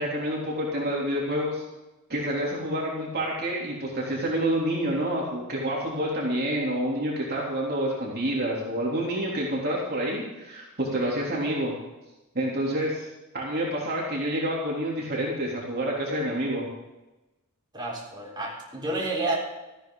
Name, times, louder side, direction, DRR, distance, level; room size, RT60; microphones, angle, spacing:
voice 1, 0.0-1.6 2.1-11.7 12.3-13.1 13.3-16.7, right 1 dB, 45° right, -4 dB, 3.3 m, -28 dB
voice 2, 17.7-19.4, right 2 dB, 20° right, -3 dB, 4.1 m, -30 dB
18.0 x 14.5 x 3.9 m, 1.0 s
head